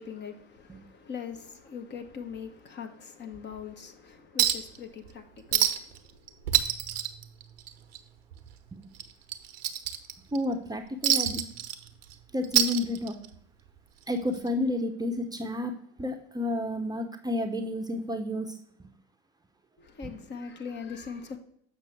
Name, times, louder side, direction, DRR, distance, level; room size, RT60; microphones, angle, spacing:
voice 1, 0.0-6.5 19.8-21.4, left 6 dB, 35° left, 1.0 m, -41 dB
Chink clink, 4.4-4.8 5.1-5.2 5.5-6.0 6.3-8.0 8.3-8.5 8.9-10.4 11.0-12.1 12.4-13.4 14.5-14.6, right 10 dB, 70° right, 0.7 m, -26 dB
voice 2, 10.3-11.5 12.3-13.2 14.1-18.6 20.0-20.1, left 1 dB, 15° right, 0.7 m, -31 dB
7.3 x 5.6 x 3.4 m
hypercardioid pair, 70°, 31 cm